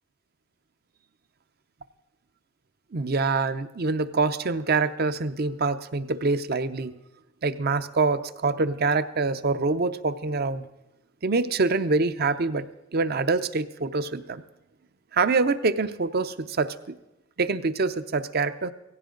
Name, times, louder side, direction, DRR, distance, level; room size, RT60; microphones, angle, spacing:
voice 1, 2.9-6.9 7.4-10.6 11.2-12.7 12.9-14.4 15.1-16.9 17.4-18.7, right 3 dB, 50° right, 12 dB, 0.7 m, -25 dB
17.5 x 15.5 x 3.9 m, 0.99 s
head